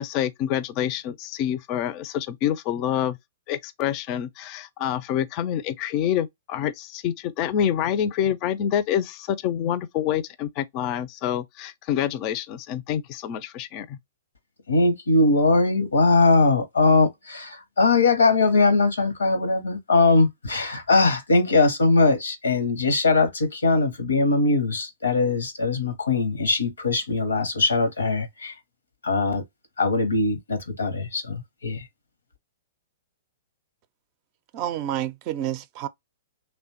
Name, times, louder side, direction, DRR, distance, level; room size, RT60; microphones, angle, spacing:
voice 1, 0.0-3.2 3.5-14.0, left 10 dB, 40° left, 0.4 m, -27 dB
voice 2, 14.7-28.5 29.0-29.4 29.8-31.8, left 3 dB, 90° left, 0.8 m, -21 dB
voice 3, 34.5-35.9, right 11 dB, 40° right, 0.4 m, -29 dB
3.1 x 2.1 x 2.8 m
hypercardioid pair, 125°, 0 cm